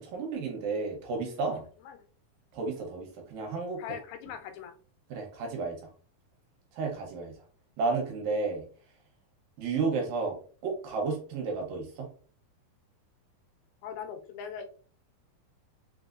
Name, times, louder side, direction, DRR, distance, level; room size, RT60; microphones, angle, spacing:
voice 1, 0.0-1.6 2.5-3.8 5.1-5.8 6.7-7.3 7.8-8.7 9.6-10.4 10.6-12.1, right 4 dB, 75° right, 0 dB, 2.5 m, -32 dB
voice 2, 3.8-4.8 13.8-14.7, left 8 dB, 85° left, 6 dB, 2.5 m, -40 dB
5.7 x 2.7 x 2.4 m, 0.41 s
omnidirectional pair, 4.3 m